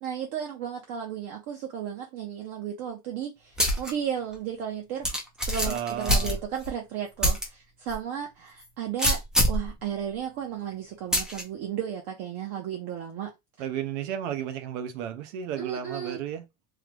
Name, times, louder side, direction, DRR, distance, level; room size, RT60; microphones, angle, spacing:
voice 1, 0.0-5.1 5.4-9.2 9.5-13.3 15.6-16.2, right 9 dB, 45° right, 0.6 m, -34 dB
sound 1, 3.6-3.9 4.3-4.4 5.0-6.7 7.2-7.4 7.9-8.0 9.0-9.7 11.1-11.4, equal, ahead, 0.3 m, -24 dB
voice 2, 5.6-6.4 13.6-16.5, right 9 dB, 80° right, 0.8 m, -33 dB
3.2 x 2.0 x 3.3 m
cardioid pair, 165°, 36 cm